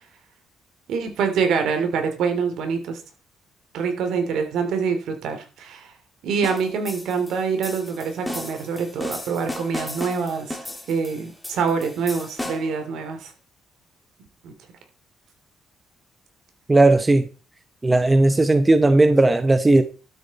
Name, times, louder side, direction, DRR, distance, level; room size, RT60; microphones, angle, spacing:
voice 1, 0.9-3.0 3.7-5.9 6.2-10.6 10.9-13.3 14.4-14.5, right 5 dB, 80° right, 3.0 m, -25 dB
sound 1, 6.4-12.8, left 1 dB, 5° left, 2.6 m, -35 dB
voice 2, 16.7-17.2 17.8-19.8, right 2 dB, 20° right, 1.0 m, -16 dB
12.0 x 8.6 x 4.2 m
cardioid pair, 90°, 0 cm